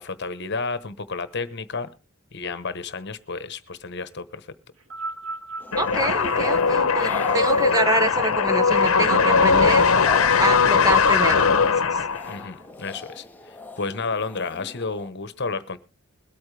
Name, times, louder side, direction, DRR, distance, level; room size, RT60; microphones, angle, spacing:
voice 1, 0.0-1.9 2.3-4.5 12.3-15.8, left 4 dB, 55° left, 13 dB, 1.1 m, -31 dB
sound 1, 4.8-9.3 10.2-10.3, right 3 dB, 70° right, 2.0 m, -38 dB
sound 2, 5.6-15.1, left 3 dB, 10° left, 0.9 m, -39 dB
sound 3, 5.7-12.5, left 5 dB, 85° left, 0.8 m, -19 dB
voice 2, 5.8-10.1 10.4-12.0, right 1 dB, 15° right, 9 dB, 1.0 m, -26 dB
22.0 x 8.8 x 3.3 m, 0.32 s
head